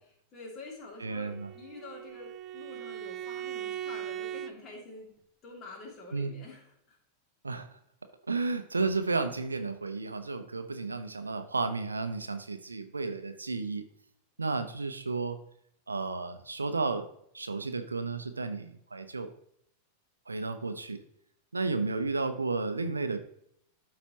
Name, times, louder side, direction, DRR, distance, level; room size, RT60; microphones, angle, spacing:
voice 1, 0.0-5.1 5.4-7.0, left 2 dB, 30° left, -2 dB, 2.5 m, -47 dB
Bowed string instrument, 1.0-4.6, right 11 dB, 35° right, 0.4 m, -39 dB
voice 2, 1.0-1.5 6.1-6.4 7.4-7.7 8.3-13.8 14.4-15.4 15.9-17.0 17.3-19.3 20.3-21.0 21.5-23.2, right 3 dB, 80° right, 8 dB, 0.6 m, -32 dB
12.5 x 4.1 x 3.0 m, 0.72 s
figure-of-eight pair, 90°, 0 cm